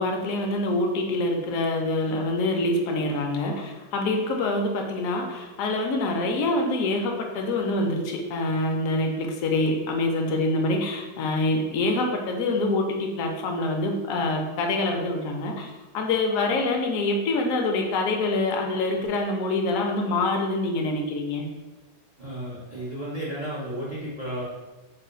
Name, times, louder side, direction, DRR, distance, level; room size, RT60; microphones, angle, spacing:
voice 1, 0.0-21.5, left 2 dB, 70° left, 2 dB, 0.8 m, -25 dB
voice 2, 22.2-24.4, right 1 dB, 85° right, -8 dB, 0.4 m, -33 dB
3.2 x 2.2 x 3.7 m, 1.1 s
omnidirectional pair, 1.8 m